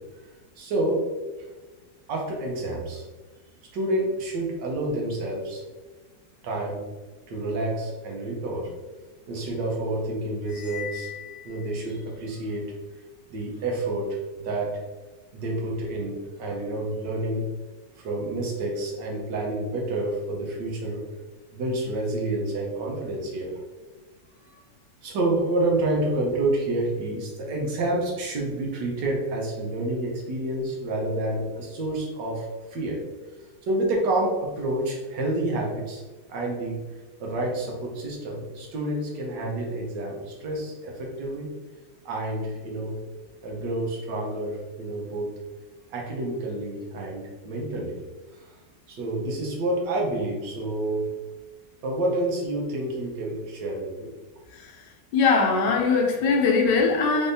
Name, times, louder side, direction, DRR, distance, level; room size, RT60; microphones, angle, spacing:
voice 1, 0.6-1.0 2.1-3.0 3.7-5.6 6.4-6.8 7.3-8.7 9.3-11.1 11.4-12.6 13.3-14.8 15.3-17.5 18.0-21.0 21.5-23.5 24.5-24.6 25.0-33.0 33.6-36.0 36.3-36.8 37.2-41.5 42.0-42.9 43.4-45.3 45.9-48.0 48.3-48.5 48.9-51.0 51.8-54.1, right 1 dB, 75° right, -1 dB, 1.6 m, -28 dB
sound 1, 10.4-12.3, left 10 dB, 55° left, 0.7 m, -40 dB
voice 2, 54.5-57.3, left 4 dB, 75° left, 3 dB, 1.3 m, -22 dB
4.7 x 3.6 x 2.7 m, 1.3 s
omnidirectional pair, 2.0 m